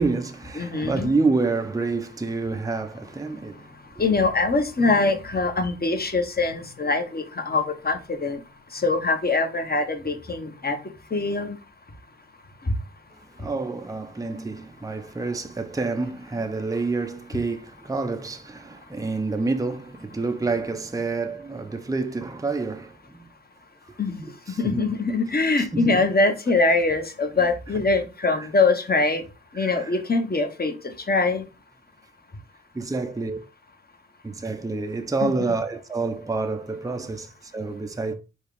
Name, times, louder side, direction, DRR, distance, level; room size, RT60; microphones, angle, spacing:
voice 1, 0.0-3.7 13.3-23.3 24.2-24.9 25.6-26.0 27.4-27.5 28.2-28.5 29.5-29.9 32.7-33.4 34.2-38.1, right 3 dB, 10° right, 0.7 m, -28 dB
voice 2, 0.6-1.1 4.0-8.4 8.8-10.8 11.1-11.5 24.0-24.2 24.6-29.2 29.6-30.7 31.1-31.4 35.2-35.3, left 3 dB, 30° left, 1.1 m, -23 dB
4.6 x 2.4 x 4.8 m
cardioid pair, 55°, 33 cm